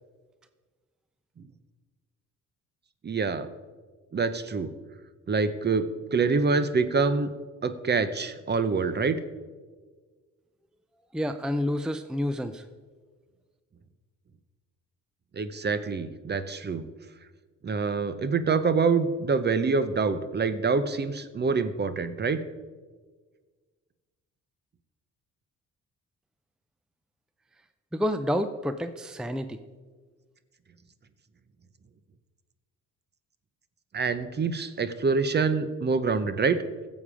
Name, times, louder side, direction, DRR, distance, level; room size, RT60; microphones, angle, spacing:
voice 1, 3.0-3.5 4.1-4.7 5.3-5.8 6.1-7.3 7.6-9.2 15.3-16.8 17.6-22.4 33.9-36.6, right 4 dB, 35° right, 13 dB, 0.8 m, -26 dB
voice 2, 11.1-12.7 27.9-29.6, equal, ahead, 10 dB, 0.5 m, -29 dB
15.5 x 7.3 x 4.9 m, 1.4 s
cardioid pair, 90°, 30 cm